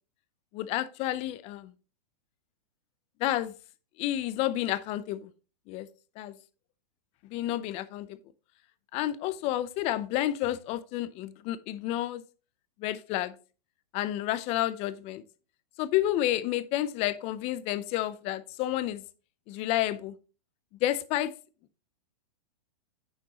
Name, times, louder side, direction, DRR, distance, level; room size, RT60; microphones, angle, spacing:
voice 1, 0.5-1.7 3.2-3.5 4.0-5.3 5.7-5.9 6.2-6.3 7.3-8.2 8.9-12.2 12.8-13.3 13.9-15.2 15.8-19.0 19.5-20.1 20.8-21.3, left 14 dB, 30° left, 16 dB, 0.5 m, -30 dB
8.9 x 6.3 x 2.9 m, 0.35 s
hypercardioid pair, 135°, 20 cm